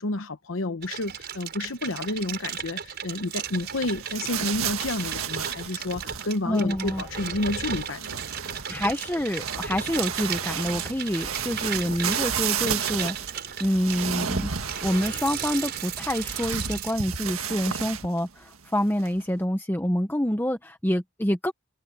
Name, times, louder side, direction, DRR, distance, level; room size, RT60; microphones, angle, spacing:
voice 1, 0.0-8.2, left 2 dB, 65° left, 1.0 m, -30 dB
sound 1, 0.8-16.9, right 7 dB, 50° right, 5.9 m, -36 dB
sound 2, 3.4-6.6 6.9-18.2 18.5-18.6 19.0-19.2, right 7 dB, 80° right, 1.7 m, -33 dB
voice 2, 6.4-7.0 8.7-14.5 14.8-21.5, equal, 10° left, 0.9 m, -27 dB
head